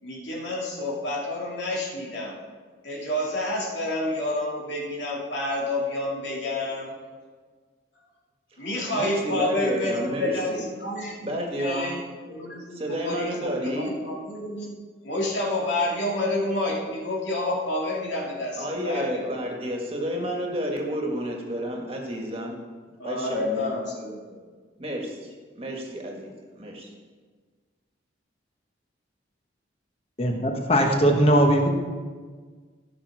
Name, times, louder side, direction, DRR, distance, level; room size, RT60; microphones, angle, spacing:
voice 1, 0.0-2.3 2.8-6.9 8.6-14.7 15.0-19.3 23.0-24.4, left 1 dB, 70° left, -3 dB, 2.4 m, -29 dB
voice 2, 8.9-10.6 11.2-12.0 12.7-13.9 18.6-22.6 23.0-23.8 24.8-25.3 25.6-26.9, equal, 30° right, 0 dB, 1.6 m, -30 dB
voice 3, 30.2-31.7, right 1 dB, 30° left, 3 dB, 1.1 m, -20 dB
15.0 x 6.2 x 4.8 m, 1.5 s
head